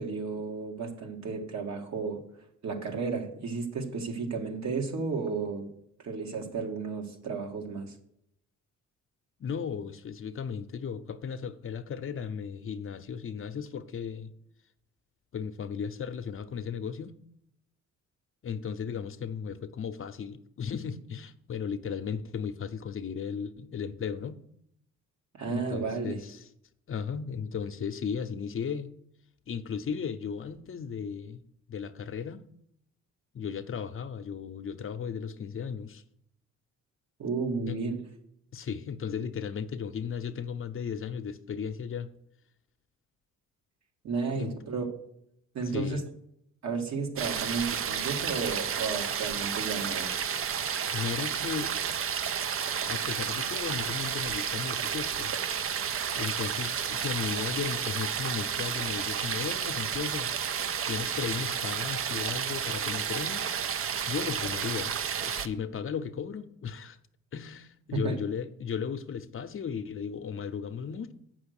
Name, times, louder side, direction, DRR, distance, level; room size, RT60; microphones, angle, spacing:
voice 1, 0.0-2.2 2.6-5.7 6.0-7.9 25.4-26.2 37.2-38.0 44.0-44.9 45.5-46.0 46.6-50.1 67.9-68.2, right 4 dB, 65° right, 1.9 m, -33 dB
voice 2, 9.4-14.3 15.3-17.1 18.4-24.4 25.5-26.5 26.9-28.9 29.5-31.4 31.7-32.4 33.3-36.0 37.7-37.8 38.5-42.1 44.3-44.5 45.6-46.0 50.9-51.7 52.9-55.3 56.2-63.6 64.1-64.9 65.2-67.0 67.3-71.1, left 7 dB, 45° left, 0.7 m, -35 dB
sound 1, 47.2-65.5, right 7 dB, 45° right, 0.6 m, -31 dB
7.8 x 6.1 x 6.5 m
cardioid pair, 90°, 30 cm